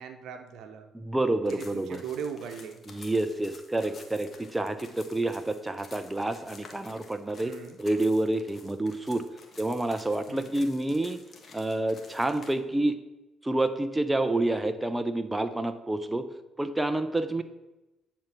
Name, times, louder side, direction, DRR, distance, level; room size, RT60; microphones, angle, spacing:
voice 1, 0.0-0.9 1.5-2.8 7.4-7.8 10.3-10.5 17.4-17.5, right 7 dB, 70° right, 7 dB, 1.0 m, -39 dB
voice 2, 0.9-2.0 2.9-9.2 9.6-11.2 11.5-13.0 13.4-16.3 16.6-17.4, right 2 dB, 15° right, 9 dB, 0.7 m, -28 dB
sound 1, 1.4-12.5, left 4 dB, 45° left, 1.7 m, -52 dB
10.5 x 4.5 x 6.0 m, 1.0 s
supercardioid pair, 55°, 0 cm